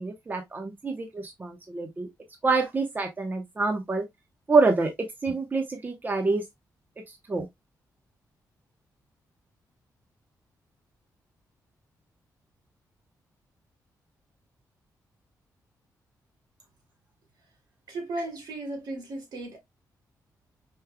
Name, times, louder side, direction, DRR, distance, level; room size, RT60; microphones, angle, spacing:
voice 1, 0.0-2.1 2.4-4.0 4.5-4.9 5.2-6.4 7.3-7.5, right 3 dB, 25° right, 1.0 m, -26 dB
voice 2, 17.9-19.6, right 2 dB, 80° right, 2.4 m, -35 dB
5.3 x 3.6 x 2.2 m
cardioid pair, 105°, 7 cm